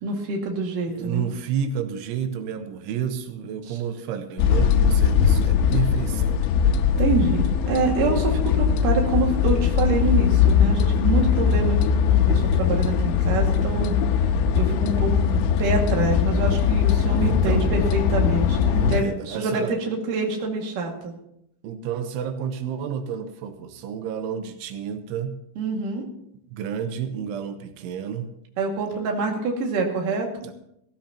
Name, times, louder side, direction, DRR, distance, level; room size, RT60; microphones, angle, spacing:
voice 1, 0.0-1.2 3.7-3.8 7.0-11.8 12.1-14.3 14.5-21.1 25.6-26.1 28.6-30.3, right 3 dB, 55° right, 1 dB, 3.2 m, -26 dB
voice 2, 0.9-6.4 17.0-17.7 18.8-19.7 21.6-25.4 26.5-28.3 30.4-30.5, right 8 dB, 90° right, 7 dB, 3.3 m, -30 dB
sound 1, 4.4-19.0, left 7 dB, 90° left, 3.3 m, -20 dB
18.5 x 15.0 x 2.9 m, 0.77 s
omnidirectional pair, 5.4 m